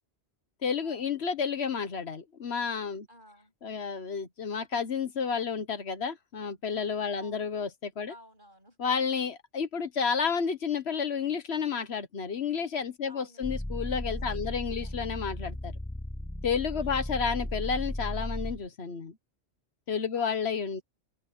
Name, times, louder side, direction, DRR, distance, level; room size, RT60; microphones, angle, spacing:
voice 1, 0.6-3.1 3.6-8.1 8.8-15.7 16.4-19.2 19.9-20.8, left 6 dB, 70° left, 1.4 m, -31 dB
voice 2, 3.1-3.5 7.1-7.5 8.1-8.8 13.1-13.5 14.1-15.0 16.7-17.4 20.1-20.8, equal, 50° right, 7.8 m, -55 dB
sound 1, 13.4-18.7, left 1 dB, 5° left, 0.7 m, -35 dB
omnidirectional pair, 1.1 m